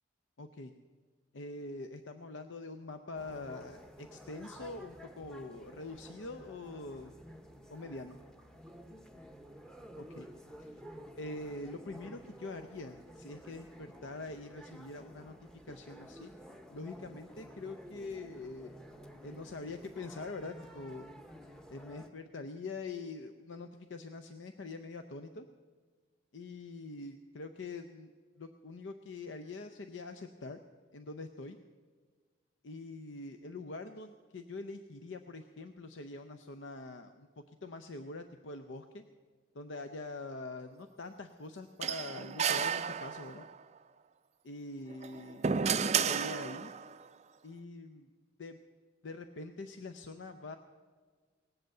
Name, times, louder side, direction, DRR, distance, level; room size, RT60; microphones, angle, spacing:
voice 1, 0.4-0.7 1.3-7.1 7.7-8.2 10.0-10.3 10.6-10.7 11.2-15.3 15.7-16.3 16.7-18.8 19.2-21.1 21.7-25.5 26.3-28.1 28.4-30.6 30.9-31.6 32.6-37.3 37.6-39.0 39.5-43.5 44.4-46.7 47.4-48.1 48.4-48.6 49.0-50.6, left 3 dB, 75° left, 8 dB, 0.6 m, -44 dB
sound 1, 3.1-22.1, equal, 5° left, 0.8 m, -52 dB
sound 2, 41.8-43.5 44.9-46.9, right 7 dB, 35° right, 0.4 m, -32 dB
18.5 x 7.9 x 7.7 m, 1.5 s
head